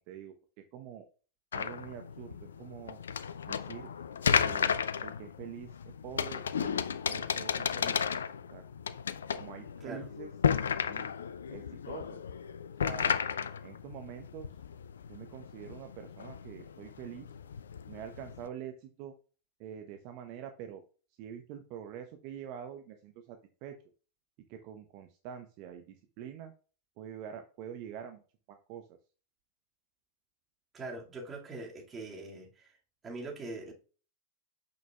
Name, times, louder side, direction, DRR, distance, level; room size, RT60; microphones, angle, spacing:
voice 1, 0.7-1.1 1.5-3.0 3.5-3.9 4.3-5.7 6.0-8.0 8.5-8.6 9.4-10.3 10.8-11.1 11.5-12.2 12.8-13.1 13.6-14.5 15.1-17.3 17.9-19.1 19.6-20.8 21.2-23.8 24.5-26.5 27.0-28.2 28.5-29.0, right 9 dB, 45° right, 0.8 m, -45 dB
sound 1, 1.5-18.5, left 7 dB, 70° left, 0.4 m, -34 dB
voice 2, 30.7-32.8 33.0-33.7, right 2 dB, 20° right, 2.1 m, -42 dB
8.5 x 6.4 x 2.3 m
figure-of-eight pair, 90°, 0 cm